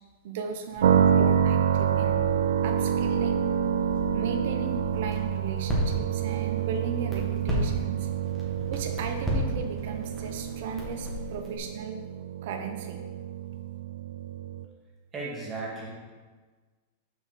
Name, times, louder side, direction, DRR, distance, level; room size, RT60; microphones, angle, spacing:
voice 1, 0.2-2.2 2.6-3.5 4.0-8.1 8.7-12.0 12.4-13.0, right 5 dB, 65° right, 6 dB, 0.9 m, -36 dB
Crackle, 0.7-11.6, left 1 dB, 5° left, 1.9 m, -35 dB
sound 1, 0.8-14.7, right 8 dB, 85° right, 0.4 m, -27 dB
voice 2, 15.1-15.9, right 3 dB, 20° right, -4 dB, 2.1 m, -35 dB
6.3 x 5.5 x 4.8 m, 1.4 s
supercardioid pair, 135°, 0 cm